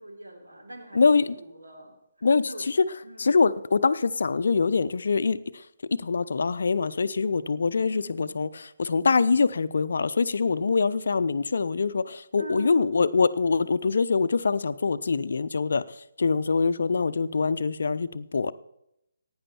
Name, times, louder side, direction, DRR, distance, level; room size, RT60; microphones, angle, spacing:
voice 1, 0.0-2.7 3.0-3.4 7.9-8.4 12.4-13.2, right 1 dB, 75° right, 2 dB, 3.2 m, -43 dB
voice 2, 0.9-1.3 2.2-2.9 3.2-5.4 6.0-15.8 16.2-18.5, left 4 dB, 60° left, 15 dB, 0.6 m, -24 dB
16.5 x 9.5 x 4.3 m, 0.81 s
figure-of-eight pair, 140°, 0 cm